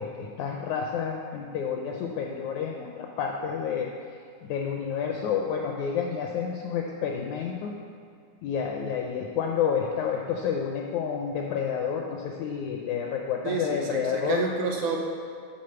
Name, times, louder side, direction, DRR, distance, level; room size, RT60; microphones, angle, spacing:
voice 1, 0.0-3.9 4.4-7.7 8.4-14.4, left 7 dB, 80° left, 1 dB, 1.7 m, -29 dB
voice 2, 13.4-15.0, right 4 dB, 75° right, 0 dB, 2.0 m, -29 dB
8.5 x 4.0 x 6.8 m, 2.4 s
omnidirectional pair, 3.8 m